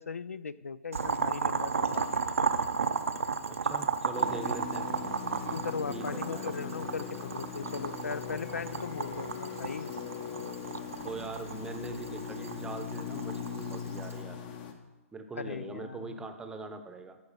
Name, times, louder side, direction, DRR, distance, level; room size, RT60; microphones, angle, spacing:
voice 1, 0.0-2.1 5.5-9.9 15.3-16.2, left 5 dB, 80° left, 18 dB, 0.4 m, -38 dB
Boiling, 0.9-14.2, right 5 dB, 75° right, 0.6 m, -34 dB
voice 2, 3.5-4.9 5.9-6.6 11.0-14.4 15.1-17.2, right 3 dB, 10° right, 7 dB, 0.8 m, -42 dB
sound 1, 4.1-14.7, left 7 dB, 40° left, 1.0 m, -40 dB
12.0 x 4.8 x 6.5 m, 1.1 s
figure-of-eight pair, 120°, 8 cm